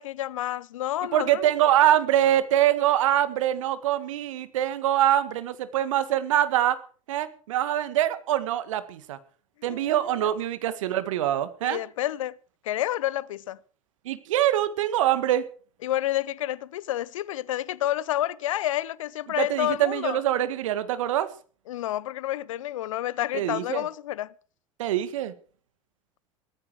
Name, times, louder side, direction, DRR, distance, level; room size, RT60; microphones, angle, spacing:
voice 1, 0.0-1.5 9.7-10.3 11.6-12.4 12.6-13.6 15.8-20.2 21.7-24.3, left 13 dB, 70° left, 0.7 m, -29 dB
voice 2, 1.1-6.8 7.1-9.2 9.6-11.8 14.1-15.4 19.4-21.3 23.3-23.9 24.8-25.3, right 12 dB, 70° right, 1.7 m, -24 dB
17.5 x 14.0 x 4.6 m
figure-of-eight pair, 70°, 17 cm